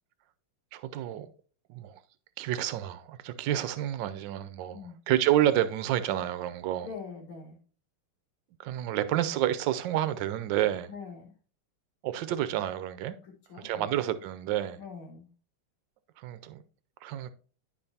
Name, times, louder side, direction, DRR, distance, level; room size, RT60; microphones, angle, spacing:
voice 1, 0.7-1.3 1.7-2.0 2.4-4.8 5.1-6.9 8.6-10.9 12.0-13.2 13.6-14.8 16.2-16.6 17.0-17.3, right 12 dB, 70° right, 1.2 m, -29 dB
voice 2, 6.8-7.6 10.9-11.3 13.2-13.9 14.8-15.3, left 5 dB, 75° left, 2.4 m, -43 dB
10.5 x 5.3 x 2.8 m
omnidirectional pair, 2.3 m